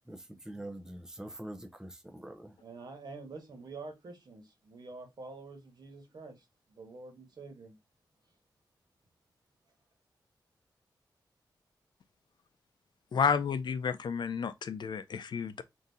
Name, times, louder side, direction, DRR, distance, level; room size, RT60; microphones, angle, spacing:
voice 1, 0.5-2.5, right 1 dB, 5° right, 0.6 m, -44 dB
voice 2, 2.6-7.8, right 3 dB, 60° right, 1.4 m, -47 dB
voice 3, 13.1-15.6, left 6 dB, 65° left, 0.5 m, -31 dB
3.8 x 2.7 x 4.0 m
wide cardioid pair, 145°, 8 cm